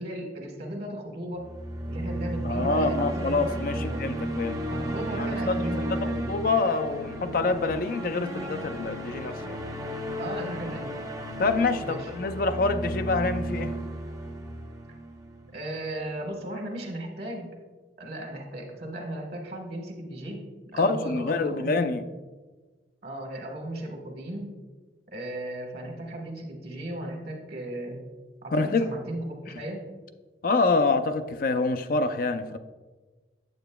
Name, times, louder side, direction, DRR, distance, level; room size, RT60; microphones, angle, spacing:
voice 1, 0.0-1.5 1.9-4.0 4.7-6.3 10.2-10.9 11.8-12.1 15.5-17.5 18.0-20.4 20.7-21.9 23.0-24.5 25.1-28.0 28.4-29.8, right 1 dB, 55° right, 1 dB, 1.3 m, -36 dB
sound 1, 1.4-15.6, right 1 dB, 20° right, 0.5 m, -33 dB
voice 2, 2.4-4.6 5.1-5.5 6.3-9.6 11.4-13.7 20.7-22.0 28.5-28.9 30.4-32.6, left 3 dB, 50° left, 9 dB, 0.4 m, -26 dB
8.8 x 8.0 x 2.2 m, 1.3 s
head